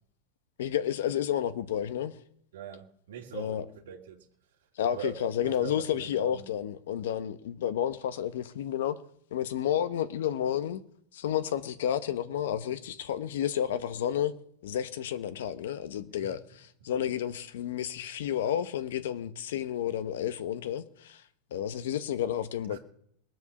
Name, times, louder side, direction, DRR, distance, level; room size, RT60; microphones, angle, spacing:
voice 1, 0.6-2.1 3.3-3.7 4.8-8.9 9.3-10.8 11.1-14.3 14.6-21.2 21.5-22.8, left 10 dB, 80° left, 1.0 m, -31 dB
voice 2, 2.5-3.6 3.9-4.2 4.9-5.1 5.4-5.7 6.0-6.3 22.7-22.8, right 9 dB, 85° right, 1.9 m, -41 dB
19.5 x 7.9 x 7.1 m
supercardioid pair, 160°, 0 cm